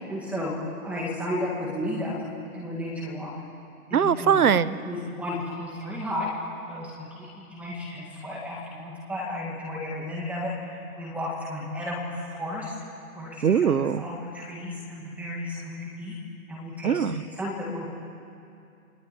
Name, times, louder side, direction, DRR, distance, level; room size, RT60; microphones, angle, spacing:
voice 1, 0.1-0.5 0.8-2.1 2.4-3.3 3.9-6.3 6.7-12.7 13.2-16.1 16.5-17.9, left 1 dB, 5° right, -3 dB, 1.9 m, -33 dB
voice 2, 3.9-4.8 13.4-14.0 16.8-17.1, right 8 dB, 85° right, 15 dB, 1.2 m, -21 dB
28.5 x 21.5 x 9.1 m, 2.5 s
hypercardioid pair, 175°, 43 cm